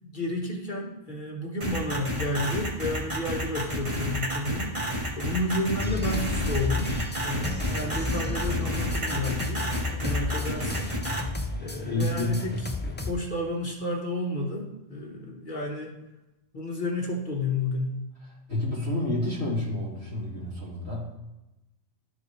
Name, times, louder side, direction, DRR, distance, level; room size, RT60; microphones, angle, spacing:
voice 1, 0.0-4.8 5.2-7.0 7.2-9.7 10.0-10.9 11.6-12.6 13.1-15.9 16.5-18.0, left 1 dB, 45° left, -1 dB, 1.4 m, -31 dB
sound 1, 1.6-11.2, equal, 30° right, 1.2 m, -31 dB
sound 2, 5.8-13.1, left 3 dB, 15° left, 0.4 m, -32 dB
voice 2, 11.8-12.5 18.5-21.2, left 1 dB, 65° right, -8 dB, 3.3 m, -29 dB
12.5 x 4.9 x 3.2 m, 0.97 s
omnidirectional pair, 1.2 m